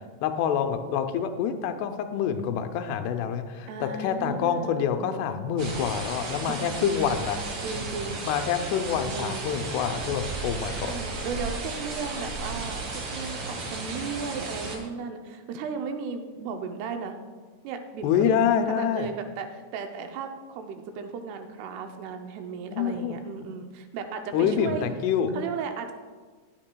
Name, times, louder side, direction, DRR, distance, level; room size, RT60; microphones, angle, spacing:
voice 1, 0.2-7.4 8.3-10.9 18.0-19.1 22.7-23.2 24.3-25.3, left 8 dB, 90° left, 8 dB, 2.8 m, -26 dB
voice 2, 3.7-5.2 6.8-7.0 7.6-8.2 9.1-9.5 10.9-12.8 13.1-17.2 17.6-18.3 18.7-24.8 25.3-25.9, right 5 dB, 80° right, 5 dB, 2.6 m, -35 dB
sound 1, 5.6-14.8, right 3 dB, 55° right, 3.4 m, -34 dB
15.0 x 9.4 x 2.2 m, 1.5 s
omnidirectional pair, 4.7 m